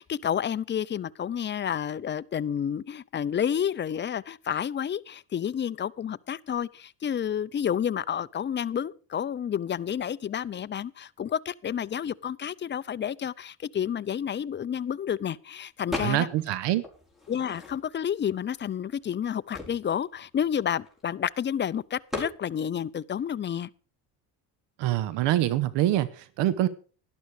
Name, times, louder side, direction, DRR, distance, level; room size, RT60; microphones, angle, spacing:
voice 1, 0.0-16.3 17.3-23.7, left 8 dB, 25° left, 0.5 m, -30 dB
sound 1, 15.9-16.5 16.8-18.1 18.7-18.8 19.0-21.3 22.1-22.4, left 2 dB, ahead, 5.1 m, -37 dB
voice 2, 16.0-16.8 24.8-26.7, right 13 dB, 70° right, 1.0 m, -25 dB
11.5 x 11.5 x 4.9 m
supercardioid pair, 90°, 44 cm